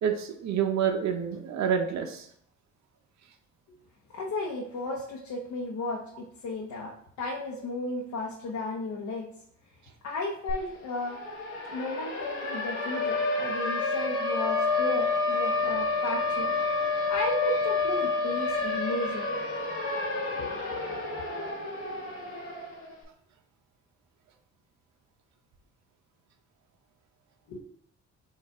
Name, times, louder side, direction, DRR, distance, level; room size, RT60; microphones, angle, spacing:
voice 1, 0.0-2.2, right 8 dB, 65° right, 5 dB, 0.7 m, -28 dB
voice 2, 4.1-9.3 10.0-11.2 11.7-16.5 17.1-19.5 20.4-20.6 20.9-21.0 27.5-27.6, left 2 dB, 70° left, -2 dB, 0.9 m, -34 dB
Siren, 10.5-10.6 10.9-22.9, left 3 dB, 90° left, 1.3 m, -29 dB
4.5 x 2.4 x 4.8 m, 0.67 s
cardioid pair, 90°, 30 cm